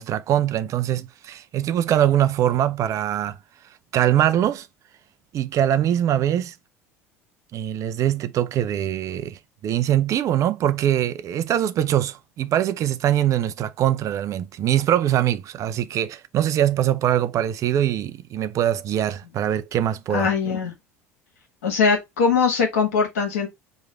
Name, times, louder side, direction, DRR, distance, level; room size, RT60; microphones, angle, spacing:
voice 1, 0.0-3.4 3.9-4.7 5.3-6.5 7.5-20.3, right 11 dB, 45° right, 0.5 m, -22 dB
voice 2, 20.1-20.7 21.6-23.5, left 5 dB, 75° left, 1.3 m, -21 dB
3.1 x 2.4 x 4.1 m
figure-of-eight pair, 65°, 8 cm